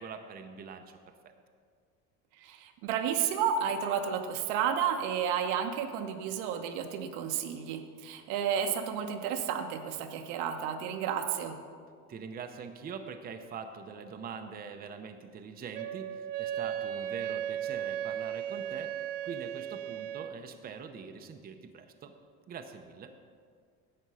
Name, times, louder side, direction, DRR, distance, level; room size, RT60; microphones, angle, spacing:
voice 1, 0.0-1.3 12.1-22.1 22.5-23.1, right 6 dB, 25° right, 6 dB, 0.6 m, -43 dB
voice 2, 2.4-11.6, right 8 dB, 80° right, 5 dB, 1.1 m, -32 dB
Wind instrument woodwind instrument, 15.7-20.4, right 10 dB, 65° right, 0.7 m, -36 dB
11.0 x 7.7 x 5.5 m, 2.1 s
cardioid pair, 135°, 36 cm